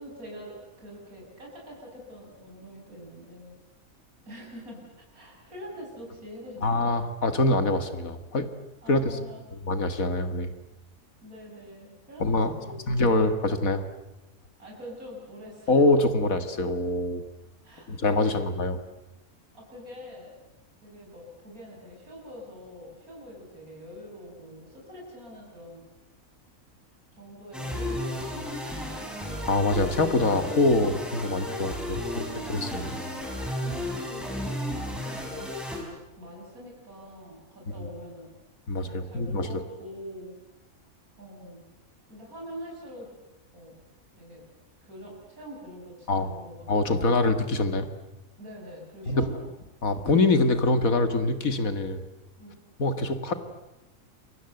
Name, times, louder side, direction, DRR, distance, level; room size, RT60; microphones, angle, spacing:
voice 1, 0.0-3.5 4.3-6.9 8.8-9.4 11.2-12.8 14.6-15.9 17.6-18.3 19.5-20.4 20.8-25.9 27.1-29.3 32.0-33.3 33.6-35.5 35.8-38.3 38.8-40.4 41.2-41.7 42.1-43.1 43.5-43.7 44.2-44.4 44.8-47.2 48.4-49.4 52.4-52.6, equal, 85° right, -1 dB, 7.3 m, -45 dB
voice 2, 6.6-8.5 8.9-9.2 9.6-10.5 12.2-12.6 12.9-13.8 15.7-17.2 17.9-18.8 29.5-32.2 32.5-32.9 38.7-39.6 46.1-46.3 46.7-47.9 49.1-49.2 49.8-52.0 52.8-53.3, left 2 dB, 75° left, 9 dB, 2.3 m, -24 dB
sound 1, 27.5-35.8, left 1 dB, ahead, 6.3 m, -33 dB
28.0 x 24.0 x 7.9 m, 0.98 s
omnidirectional pair, 1.5 m